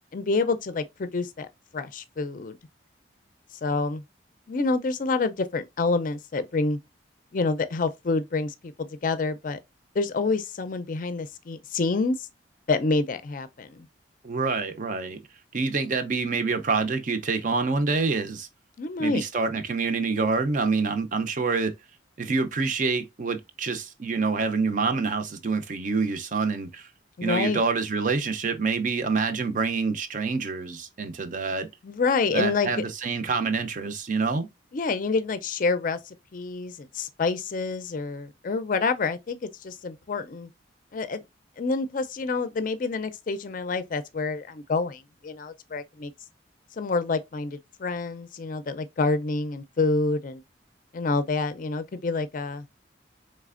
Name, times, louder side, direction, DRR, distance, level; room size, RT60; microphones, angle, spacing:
voice 1, 0.1-1.5 1.7-2.6 3.6-4.0 4.5-6.8 7.3-9.6 9.9-12.3 12.7-13.9 18.8-19.2 27.2-27.6 31.8-32.8 34.7-40.5 40.9-41.2 41.6-46.1 46.8-50.4 50.9-52.7, left 3 dB, 45° left, 0.4 m, -27 dB
voice 2, 14.2-15.2 15.5-18.5 19.0-21.7 22.2-26.9 27.2-31.7 32.3-34.5, right 4 dB, 45° right, 0.5 m, -26 dB
4.1 x 3.2 x 2.4 m
head